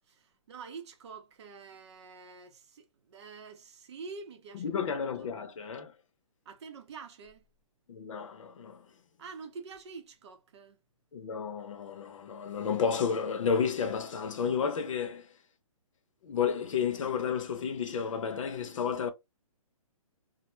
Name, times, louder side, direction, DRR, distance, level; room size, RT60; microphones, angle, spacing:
voice 1, 0.1-5.3 6.5-7.5 9.2-10.8, right 5 dB, 50° right, 0.7 m, -47 dB
voice 2, 4.5-5.9 7.9-8.9 11.1-15.3 16.2-19.1, left 6 dB, 60° left, 0.6 m, -31 dB
2.1 x 2.1 x 3.0 m
hypercardioid pair, 145°, 18 cm